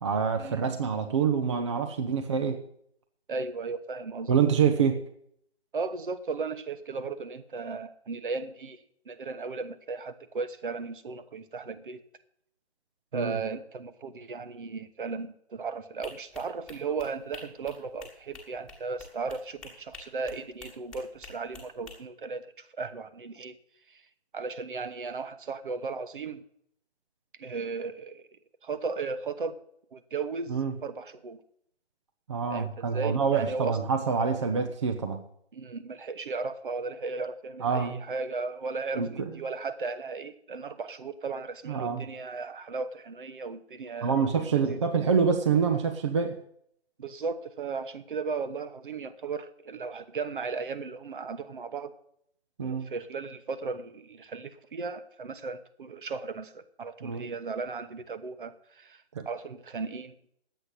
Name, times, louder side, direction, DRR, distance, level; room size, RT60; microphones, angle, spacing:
voice 1, 0.0-2.6 4.3-5.0 13.1-13.3 30.5-30.7 32.3-35.2 37.6-38.0 39.0-39.1 41.7-42.1 44.0-46.4 52.6-52.9 57.0-57.2 59.1-59.2, right 6 dB, 25° right, 5 dB, 0.7 m, -26 dB
voice 2, 3.3-4.3 5.7-12.0 13.1-23.5 23.9-24.0 24.3-26.4 27.4-28.3 28.6-29.6 29.9-31.4 32.5-33.8 35.5-44.2 44.5-44.8 47.0-51.9 52.6-60.4, right 4 dB, 50° right, 12 dB, 1.2 m, -36 dB
sound 1, 16.0-21.9, left 3 dB, ahead, 1.7 m, -48 dB
10.5 x 8.3 x 8.3 m, 0.69 s
figure-of-eight pair, 155°, 34 cm